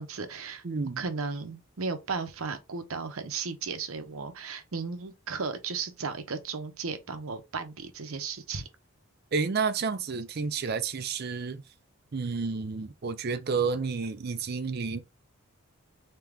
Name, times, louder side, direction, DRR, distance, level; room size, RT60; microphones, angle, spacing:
voice 1, 0.0-0.6 1.0-8.7, right 4 dB, 75° right, 0.7 m, -35 dB
voice 2, 0.6-1.0 9.3-11.6 12.1-15.0, right 5 dB, 45° right, 0.5 m, -30 dB
3.5 x 2.9 x 3.4 m
head